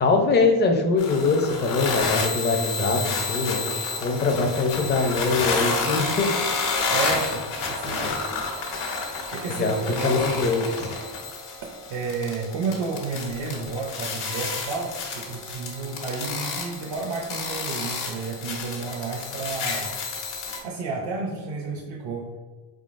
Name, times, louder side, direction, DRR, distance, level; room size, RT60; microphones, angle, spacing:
voice 1, 0.0-3.7 4.0-6.3 8.0-8.1 9.5-9.8 10.0-11.0, left 3 dB, 25° left, 3 dB, 0.4 m, -23 dB
sound 1, 1.0-20.6, left 4 dB, 90° left, 1.1 m, -30 dB
voice 2, 6.9-8.2 9.3-10.2 11.9-20.0 20.6-22.3, right 4 dB, 60° right, -1 dB, 0.7 m, -31 dB
4.5 x 3.7 x 2.5 m, 1.4 s
cardioid pair, 150°, 48 cm